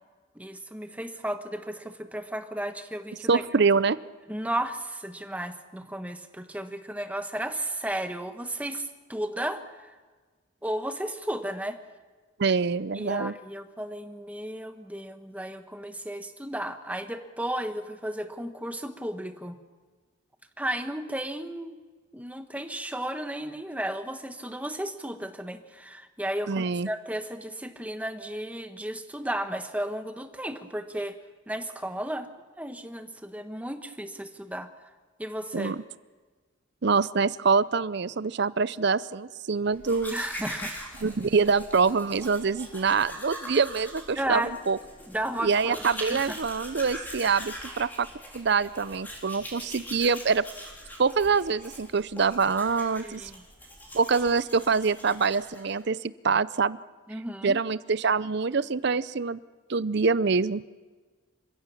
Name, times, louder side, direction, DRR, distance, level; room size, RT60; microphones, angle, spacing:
voice 1, 0.3-3.4 4.3-9.9 10.6-11.8 12.9-19.6 20.6-21.8 22.1-31.1 31.5-32.3 32.6-34.7 35.2-35.8 40.1-40.8 44.2-44.5 45.1-45.8 46.1-46.4 53.0-53.4 57.1-57.6, right 1 dB, 5° right, 7 dB, 1.2 m, -34 dB
voice 2, 3.3-4.0 12.4-13.3 26.5-26.9 35.5-35.8 36.8-40.2 41.0-44.8 45.4-48.1 48.3-50.4 51.0-53.2 53.9-56.8 57.4-59.4 59.7-60.6, right 5 dB, 55° right, 18 dB, 0.6 m, -25 dB
Domestic sounds home sounds, 39.7-55.8, equal, 10° left, 3.8 m, -42 dB
27.5 x 15.5 x 7.1 m, 1.4 s
head